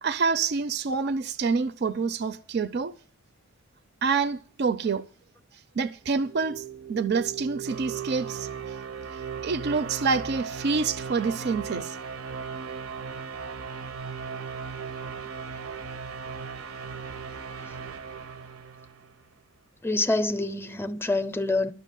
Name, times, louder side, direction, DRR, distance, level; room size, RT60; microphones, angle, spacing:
voice 1, 0.0-2.9 4.0-5.1 5.8-6.6 6.9-8.5 9.4-12.0, right 5 dB, 50° right, 0.5 m, -27 dB
sound 1, 6.1-19.2, right 6 dB, 85° right, 0.8 m, -37 dB
voice 2, 19.8-21.7, left 2 dB, 10° left, 0.5 m, -26 dB
12.0 x 5.9 x 9.1 m
head